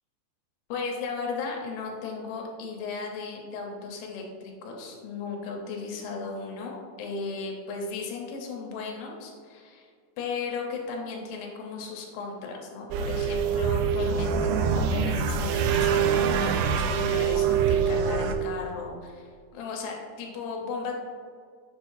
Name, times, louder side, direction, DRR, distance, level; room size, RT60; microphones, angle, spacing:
voice 1, 0.7-9.9 10.2-20.9, left 4 dB, 85° left, 0 dB, 3.3 m, -36 dB
sound 1, 12.9-18.4, right 6 dB, 85° right, 2.4 m, -24 dB
7.6 x 7.5 x 2.6 m, 2.1 s
omnidirectional pair, 5.2 m